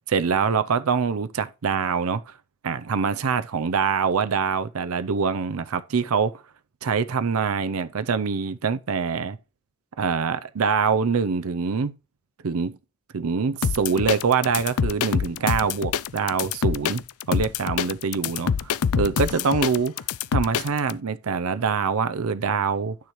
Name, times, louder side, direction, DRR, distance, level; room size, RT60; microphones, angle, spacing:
voice 1, 0.1-2.3 2.6-6.3 6.8-9.4 10.0-11.9 12.4-12.8 13.1-17.0 17.3-19.9 20.3-23.0, right 5 dB, 75° right, 0.6 m, -24 dB
sound 1, 13.6-20.9, left 7 dB, 90° left, 0.4 m, -25 dB
12.0 x 9.4 x 3.1 m
head